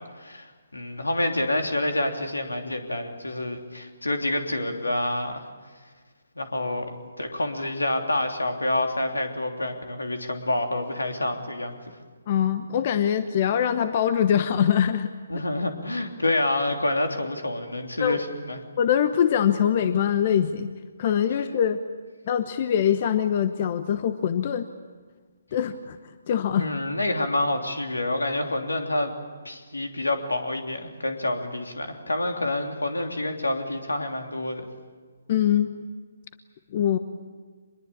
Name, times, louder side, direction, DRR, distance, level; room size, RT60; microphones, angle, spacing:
voice 1, 0.0-5.4 6.3-11.8 15.3-18.6 26.6-29.1 29.4-34.6, left 1 dB, 85° left, 4 dB, 3.2 m, -28 dB
voice 2, 12.3-15.4 18.0-18.2 18.8-20.7 21.0-21.8 22.3-24.7 25.5-26.0 26.3-26.7 35.3-35.7 36.7-37.0, left 9 dB, 40° left, 11 dB, 1.0 m, -23 dB
25.0 x 21.5 x 8.7 m, 1.5 s
figure-of-eight pair, 140°, 0 cm